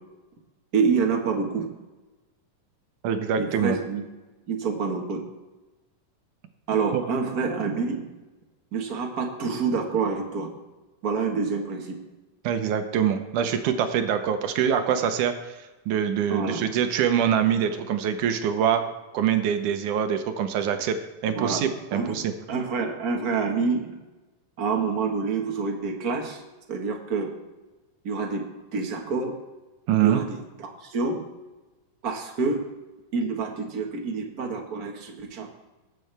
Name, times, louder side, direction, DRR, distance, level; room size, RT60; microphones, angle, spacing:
voice 1, 0.7-1.7 3.4-4.0 4.5-5.2 6.7-8.0 8.7-10.5 11.0-11.9 16.3-16.6 21.3-21.6 21.9-23.9 24.6-26.4 26.7-27.3 28.0-28.4 28.7-29.4 30.0-31.2 32.0-32.6 33.1-35.5, right 5 dB, 55° right, 1 dB, 1.0 m, -27 dB
voice 2, 3.0-3.8 12.4-18.8 19.1-21.0 21.2-22.3 29.9-30.2, right 8 dB, 70° right, 7 dB, 2.2 m, -24 dB
19.0 x 7.7 x 3.4 m, 1.1 s
omnidirectional pair, 4.0 m